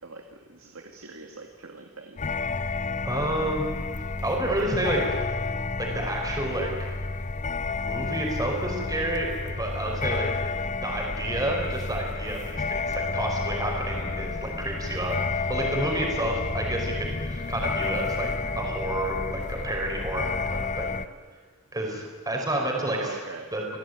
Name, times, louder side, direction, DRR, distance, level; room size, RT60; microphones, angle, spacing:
voice 1, 0.0-2.8 9.7-10.1 13.9-14.4 15.6-16.0 22.9-23.5, right 3 dB, 70° right, 3 dB, 2.2 m, -43 dB
sound 1, 2.2-21.1, left 3 dB, 35° left, 0.8 m, -31 dB
voice 2, 3.0-3.7 4.2-5.0 5.8-6.7 7.7-10.3 10.8-18.3 18.6-20.9 21.7-23.2 23.5-23.8, right 1 dB, 20° right, 0 dB, 5.2 m, -30 dB
29.0 x 18.0 x 9.6 m, 1.5 s
head